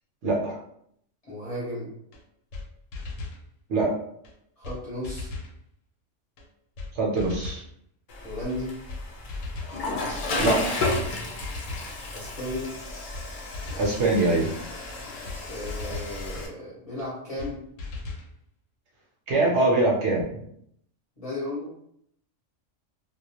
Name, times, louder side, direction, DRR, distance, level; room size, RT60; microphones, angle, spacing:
voice 1, 0.2-0.6 3.7-3.9 6.9-7.6 10.3-10.8 13.8-14.5 19.3-20.5, right 2 dB, 65° right, -3 dB, 0.9 m, -23 dB
voice 2, 1.3-1.9 4.6-5.3 8.2-8.8 12.1-12.7 15.5-17.6 21.2-21.7, left 1 dB, 35° left, -7 dB, 0.7 m, -34 dB
sound 1, 2.1-2.2 2.5-2.6 2.9-3.4 4.2-4.3 4.6-4.8 5.0-5.5 6.4-6.5 6.8-6.9 7.2-7.7 8.5-8.6 8.9-9.0 9.3-9.8 10.6-10.7 11.0-11.1 11.4-11.9 12.7-12.8 13.1-13.3 13.5-14.0 14.9-15.0 15.3-15.4 15.7-16.1 17.0-17.1 17.4-17.5 17.8-18.3, left 3 dB, 85° left, 1.0 m, -37 dB
Water / Toilet flush, 8.1-16.5, left 2 dB, 65° left, 0.5 m, -32 dB
2.2 x 2.1 x 2.7 m, 0.71 s
omnidirectional pair, 1.3 m